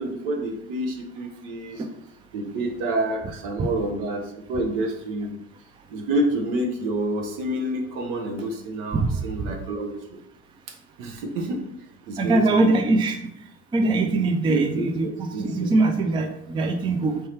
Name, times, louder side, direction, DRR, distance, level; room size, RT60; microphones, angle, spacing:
voice 1, 0.0-1.8 2.3-5.4 5.9-10.2 10.7-11.6 12.1-12.7 14.4-15.7, right 1 dB, 70° right, 4 dB, 1.0 m, -28 dB
voice 2, 12.2-13.2 13.7-17.2, right 2 dB, 15° right, 5 dB, 0.4 m, -22 dB
4.5 x 2.7 x 3.3 m, 0.80 s
hypercardioid pair, 80°, 38 cm